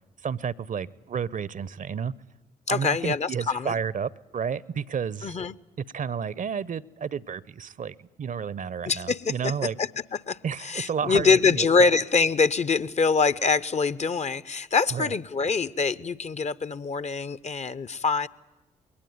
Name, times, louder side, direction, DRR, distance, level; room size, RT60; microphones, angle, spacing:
voice 1, 0.2-2.1 2.7-5.4 5.9-9.8 10.4-11.6 14.9-15.1, right 7 dB, 40° right, 23 dB, 0.7 m, -31 dB
voice 2, 2.7-3.7 5.2-5.5 8.9-18.3, left 4 dB, 35° left, 17 dB, 0.7 m, -24 dB
21.5 x 18.5 x 9.4 m, 1.1 s
hypercardioid pair, 45°, 20 cm